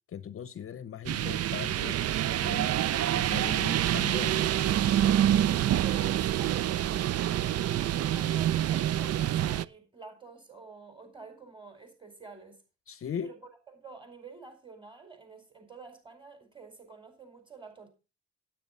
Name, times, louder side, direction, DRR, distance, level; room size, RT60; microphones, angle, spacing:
voice 1, 0.1-2.0 2.3-2.8 3.1-4.4 12.9-13.3, left 8 dB, 45° left, 0.7 m, -39 dB
sound 1, 1.1-9.7, right 11 dB, 55° right, 0.5 m, -27 dB
voice 2, 5.8-7.6 7.9-12.6 13.2-13.4 13.7-17.9, right 5 dB, 15° right, 4.9 m, -48 dB
9.4 x 9.1 x 5.4 m
cardioid pair, 90°, 30 cm